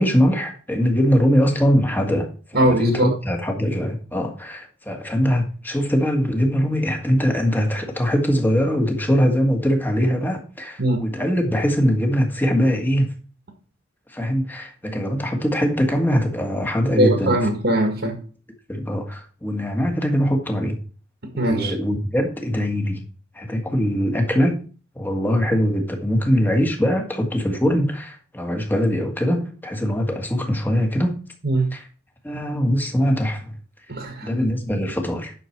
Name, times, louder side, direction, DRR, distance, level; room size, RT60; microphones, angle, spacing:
voice 1, 0.0-13.1 14.1-17.4 18.7-20.8 21.3-23.0 23.3-24.6 24.9-31.2 31.7-31.8 32.2-33.5 34.2-35.3, equal, 10° left, 1.6 m, -22 dB
voice 2, 2.5-3.1 10.8-11.0 17.0-18.2 21.3-21.7 31.4-31.7 33.9-34.3, right 1 dB, 55° right, 1.7 m, -20 dB
10.5 x 6.6 x 4.5 m
head